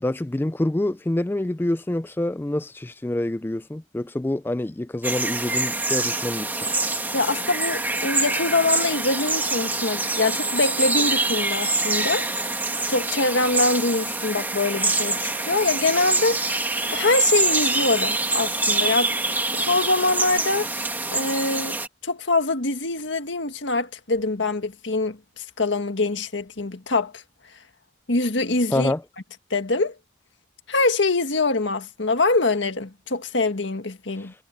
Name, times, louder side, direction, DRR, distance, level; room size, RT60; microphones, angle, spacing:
voice 1, 0.0-6.5 28.7-29.0 34.2-34.3, left 1 dB, 10° left, 0.3 m, -26 dB
sound 1, 5.0-21.9, right 2 dB, 10° right, 1.6 m, -25 dB
voice 2, 7.1-12.3 12.9-16.6 16.9-19.2 19.5-21.8 22.0-27.2 28.1-28.9 29.5-30.0 30.7-34.3, left 3 dB, 85° left, 1.7 m, -24 dB
head